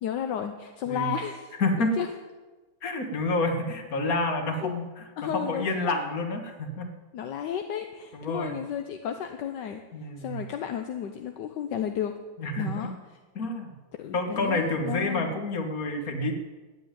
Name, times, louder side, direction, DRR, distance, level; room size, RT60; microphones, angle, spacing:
voice 1, 0.0-2.1 4.6-4.7 5.2-6.1 7.1-9.8 10.2-12.1 12.6-12.9 14.0-15.3, left 9 dB, 75° left, 6 dB, 1.4 m, -33 dB
voice 2, 1.6-2.0 2.8-5.1 5.3-6.9 8.1-8.5 9.9-10.4 12.4-12.9 13.4-13.7 14.1-16.3, left 2 dB, 50° left, 5 dB, 2.1 m, -28 dB
14.5 x 9.2 x 9.2 m, 1.3 s
omnidirectional pair, 2.0 m